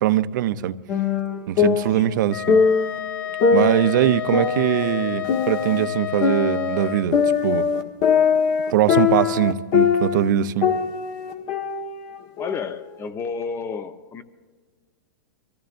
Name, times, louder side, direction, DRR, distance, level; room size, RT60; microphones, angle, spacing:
voice 1, 0.0-0.8 1.5-2.6 3.5-7.6 8.7-10.7, right 11 dB, 65° right, 0.7 m, -22 dB
sound 1, 0.9-3.0 3.4-5.8 6.2-10.3 10.6-12.6, left 6 dB, 50° left, 1.5 m, -21 dB
Wind instrument woodwind instrument, 2.3-7.1, left 12 dB, 85° left, 0.5 m, -30 dB
voice 2, 12.4-14.2, left 5 dB, 25° left, 0.9 m, -31 dB
24.0 x 15.0 x 2.6 m
hypercardioid pair, 120°, 11 cm